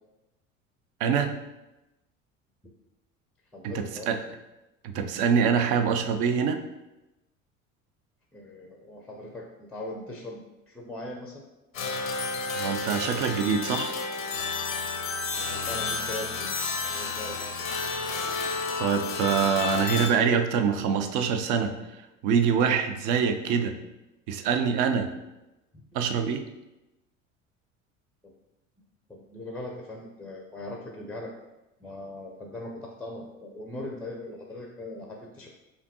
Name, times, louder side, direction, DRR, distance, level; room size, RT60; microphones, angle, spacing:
voice 1, 1.0-1.3 3.6-4.2 4.8-6.6 12.5-13.9 18.8-21.7 22.2-23.8 24.3-25.1 25.9-26.4, right 6 dB, 50° right, 8 dB, 0.5 m, -25 dB
voice 2, 3.5-4.1 8.3-11.4 15.3-17.6 25.7-25.8 28.2-28.3 29.1-31.3 31.8-35.5, left 1 dB, 5° left, 0 dB, 0.5 m, -40 dB
sound 1, 11.7-20.1, left 4 dB, 90° left, 0.6 m, -31 dB
4.9 x 2.7 x 2.8 m, 0.97 s
figure-of-eight pair, 65°, 39 cm